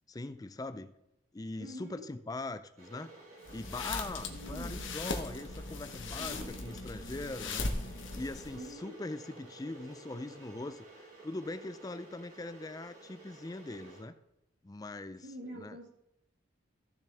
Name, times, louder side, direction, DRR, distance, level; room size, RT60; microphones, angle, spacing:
voice 1, 0.1-0.9 1.3-3.1 3.5-7.7 8.1-14.2 14.6-15.3 15.5-15.8, left 2 dB, 20° left, 0.4 m, -41 dB
voice 2, 1.6-2.1 4.3-5.0 6.2-6.9 8.6-9.0 15.2-15.9, equal, 65° right, 1.6 m, -46 dB
Water / Boiling, 2.8-14.0, right 2 dB, 40° right, 2.9 m, -53 dB
sound 1, 3.4-8.7, left 3 dB, 75° left, 1.1 m, -39 dB
14.5 x 6.9 x 3.4 m
head